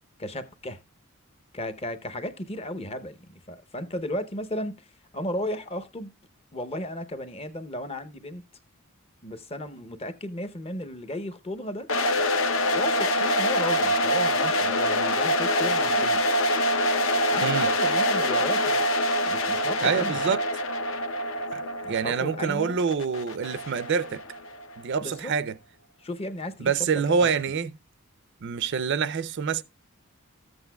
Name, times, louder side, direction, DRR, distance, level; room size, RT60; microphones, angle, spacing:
voice 1, 0.2-0.8 1.5-4.8 5.1-6.1 6.5-8.4 9.2-11.9 12.7-16.2 17.3-18.8 19.2-20.3 21.8-22.8 25.0-25.3 26.0-26.7 27.1-27.3, left 1 dB, 25° left, 0.7 m, -34 dB
sound 1, 11.9-24.7, left 1 dB, 60° left, 0.7 m, -25 dB
voice 2, 19.8-20.4 21.5-21.6 21.9-24.2 24.8-25.5 26.6-27.7 28.4-29.6, right 6 dB, 55° right, 0.4 m, -26 dB
13.5 x 7.9 x 2.2 m
head